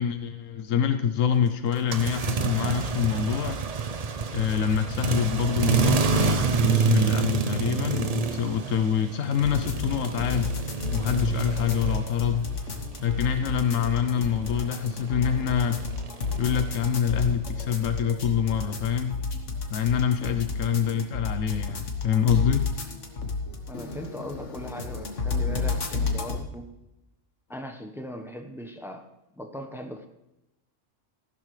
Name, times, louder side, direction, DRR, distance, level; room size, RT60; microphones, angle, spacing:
voice 1, 0.0-3.6 4.3-10.5 10.9-12.5 13.0-15.8 16.4-19.2 19.7-22.7, left 8 dB, 85° left, 8 dB, 1.1 m, -26 dB
sound 1, 1.7-12.5 12.8-16.9, right 5 dB, 40° right, 0.6 m, -28 dB
sound 2, 9.4-26.4, left 4 dB, 70° left, 1.8 m, -31 dB
voice 2, 23.7-26.7 27.5-29.0 29.4-30.1, equal, ahead, 5 dB, 1.0 m, -39 dB
15.0 x 12.0 x 3.3 m, 0.91 s
omnidirectional pair, 1.3 m